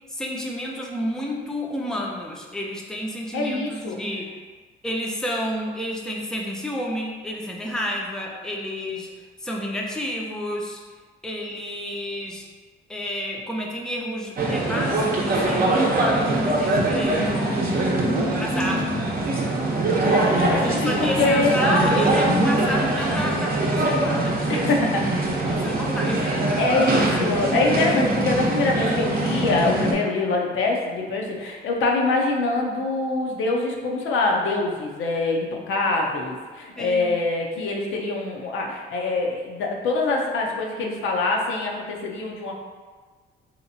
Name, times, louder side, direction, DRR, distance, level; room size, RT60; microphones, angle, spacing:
voice 1, 0.1-4.3 4.8-9.1 9.4-10.8 11.2-12.5 12.9-17.6 18.4-18.8 20.3-24.9 25.5-26.9 36.8-37.2, equal, 5° left, -2 dB, 0.5 m, -30 dB
voice 2, 3.3-4.0 18.0-19.5 20.0-21.6 24.5-25.1 26.6-42.5, left 3 dB, 80° left, 0 dB, 0.6 m, -24 dB
sound 1, 14.4-29.9, right 2 dB, 45° right, 0.7 m, -22 dB
3.1 x 2.9 x 2.6 m, 1.5 s
cardioid pair, 90°, 20 cm